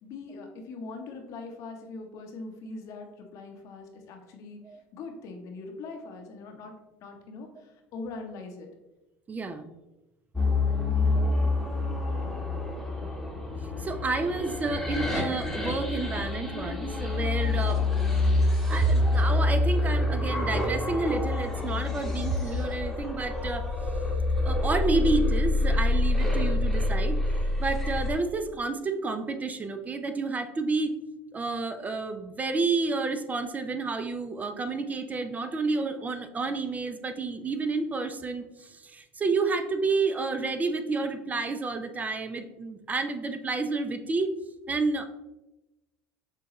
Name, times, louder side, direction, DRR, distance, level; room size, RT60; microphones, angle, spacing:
voice 1, 0.0-8.7 10.8-11.2, left 3 dB, 60° left, 3 dB, 0.9 m, -42 dB
voice 2, 9.3-9.8 11.1-11.4 13.8-17.8 18.5-23.7 24.4-27.2 27.6-31.0 31.3-44.3 44.7-45.1, right 3 dB, 25° right, 9 dB, 0.4 m, -30 dB
sound 1, 10.3-28.1, left 2 dB, ahead, 1.0 m, -27 dB
6.7 x 2.2 x 3.0 m, 1.0 s
hypercardioid pair, 85°, 6 cm